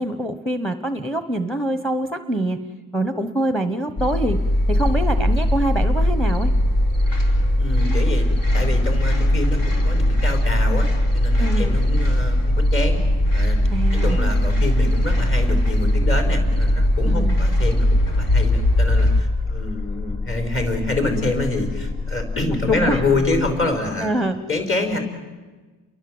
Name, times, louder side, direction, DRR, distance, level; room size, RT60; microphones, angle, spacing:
voice 1, 0.0-2.6 2.9-4.4 4.7-6.5 11.4-11.7 13.7-14.2 17.0-17.3 22.7-23.0 24.0-24.4, right 1 dB, ahead, 8 dB, 1.0 m, -24 dB
sound 1, 4.0-19.2, equal, 65° left, 4.8 m, -19 dB
sound 2, 4.6-23.5, left 3 dB, 15° left, 6.1 m, -29 dB
voice 2, 7.6-8.3 8.5-10.9 11.1-13.0 13.3-13.6 13.9-25.0, left 2 dB, 35° left, 5 dB, 5.2 m, -26 dB
30.0 x 23.0 x 7.9 m, 1.3 s
cardioid pair, 175°, 36 cm